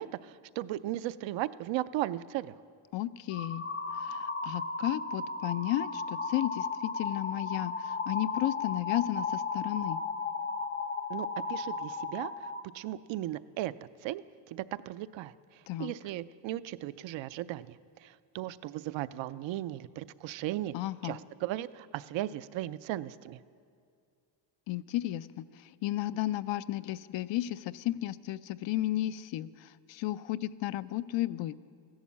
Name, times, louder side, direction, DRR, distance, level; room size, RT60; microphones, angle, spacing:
voice 1, 0.0-2.5 11.1-12.5 12.7-13.7 14.0-14.2 14.5-15.3 15.8-20.7 21.0-23.4, right 14 dB, 80° right, 15 dB, 0.6 m, -36 dB
voice 2, 2.9-3.6 4.0-10.0 15.7-15.9 20.7-21.2 24.7-25.4 25.8-29.5 29.9-31.6, left 15 dB, 80° left, 15 dB, 0.5 m, -33 dB
sound 1, 3.3-12.6, left 4 dB, 25° left, 0.5 m, -35 dB
15.0 x 11.5 x 7.3 m, 2.3 s
cardioid pair, 120°, 44 cm